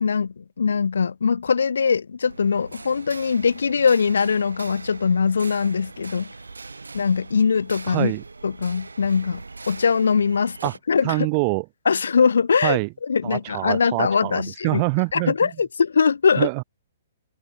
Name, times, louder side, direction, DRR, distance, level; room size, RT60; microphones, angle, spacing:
voice 1, 0.0-6.3 6.9-8.1 8.4-11.3 11.9-14.8 15.1-16.5, left 5 dB, 70° left, 0.4 m, -21 dB
sound 1, 2.3-10.8, right 3 dB, 80° right, 5.7 m, -41 dB
voice 2, 7.9-8.2 10.6-10.7 11.0-11.6 12.6-12.9 13.2-15.5 16.4-16.6, right 33 dB, 35° right, 1.1 m, -25 dB
figure-of-eight pair, 120°, 0 cm